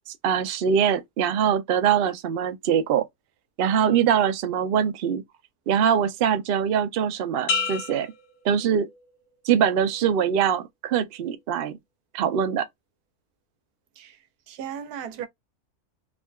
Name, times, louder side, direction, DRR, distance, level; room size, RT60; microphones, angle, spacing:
voice 1, 0.1-3.0 3.6-5.2 5.7-8.1 8.4-8.9 9.4-11.8 12.1-12.7, right 8 dB, 70° right, 0.5 m, -23 dB
sound 1, 7.5-9.3 9.8-10.2, left 4 dB, 90° left, 1.3 m, -31 dB
voice 2, 14.5-15.3, right 8 dB, 85° right, 1.1 m, -35 dB
3.5 x 2.2 x 2.3 m
omnidirectional pair, 1.6 m